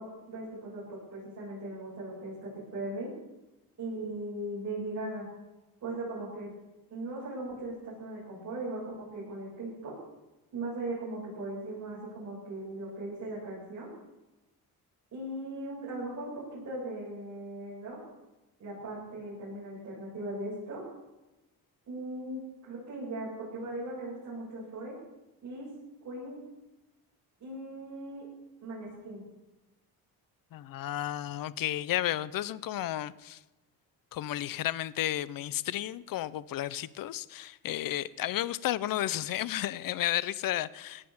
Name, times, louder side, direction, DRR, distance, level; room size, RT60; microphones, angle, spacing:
voice 1, 0.0-3.1 3.8-5.3 5.8-6.5 6.9-9.9 10.5-13.9 15.1-18.0 18.6-20.8 21.9-24.9 25.4-25.7 26.0-26.4 27.4-28.2 28.6-29.2, right 2 dB, 45° right, 8.0 m, -38 dB
voice 2, 30.5-33.4 34.1-41.1, left 13 dB, 60° left, 0.7 m, -32 dB
18.0 x 10.0 x 7.3 m
cardioid pair, 140°, 38 cm